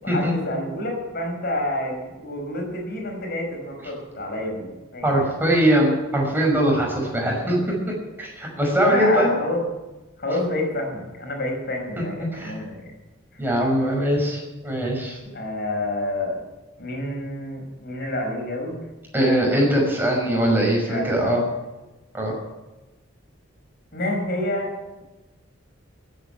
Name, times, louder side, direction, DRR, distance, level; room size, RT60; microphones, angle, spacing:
voice 1, 0.0-5.3 8.8-9.6 10.2-12.9 13.3-13.4 15.3-16.4 16.8-18.8 20.9-21.4 23.9-24.7, left 1 dB, 55° left, 1 dB, 5.8 m, -28 dB
voice 2, 5.0-9.3 12.2-12.5 13.4-15.2 19.1-21.4 22.1-22.4, right 1 dB, 10° right, -1 dB, 5.9 m, -21 dB
15.5 x 9.5 x 9.1 m, 1.1 s
head